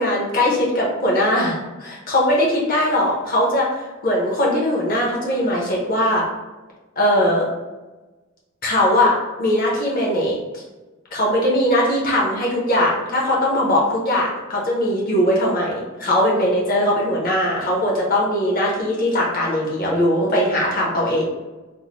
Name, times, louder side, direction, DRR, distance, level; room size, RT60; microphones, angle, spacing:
voice 1, 0.0-6.2 7.0-7.4 8.6-9.1 9.4-10.6 11.1-21.2, left 1 dB, 45° left, -4 dB, 0.9 m, -20 dB
3.7 x 2.1 x 3.0 m, 1.1 s
head